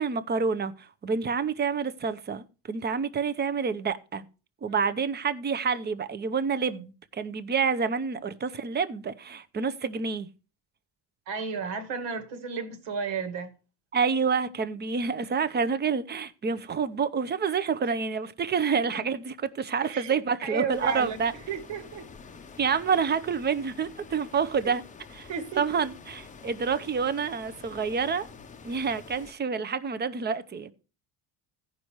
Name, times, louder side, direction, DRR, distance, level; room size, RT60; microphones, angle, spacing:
voice 1, 0.0-4.2 4.6-10.3 13.9-21.3 22.6-24.8 25.1-25.3 25.6-28.3 28.6-30.7, right 5 dB, 25° right, 0.7 m, -28 dB
voice 2, 11.3-13.5 18.7-19.0 19.8-21.2 21.5-22.1 24.6-24.7 25.3-25.8, right 6 dB, 75° right, 2.1 m, -34 dB
sound 1, 20.7-29.3, left 5 dB, 15° left, 0.7 m, -48 dB
15.5 x 5.5 x 4.5 m
cardioid pair, 145°, 44 cm